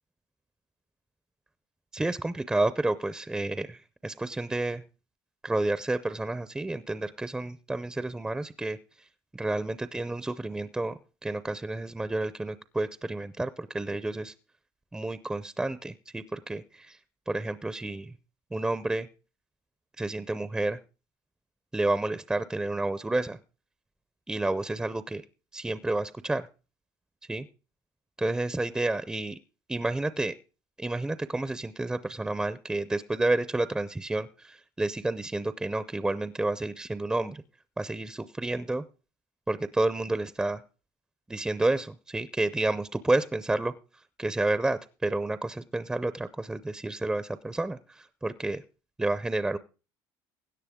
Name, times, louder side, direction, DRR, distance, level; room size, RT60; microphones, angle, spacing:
voice 1, 1.9-4.8 5.4-8.8 9.3-14.3 14.9-17.0 17.3-18.1 18.5-19.1 20.0-20.8 21.7-23.4 24.3-25.2 25.5-26.5 27.3-27.5 28.2-29.4 29.7-30.3 30.8-37.4 37.8-38.8 39.5-40.6 41.3-43.7 44.2-48.6 49.0-49.6, right 2 dB, 10° right, 13 dB, 0.5 m, -30 dB
17.0 x 9.9 x 3.6 m, 0.34 s
cardioid pair, 115°, 9 cm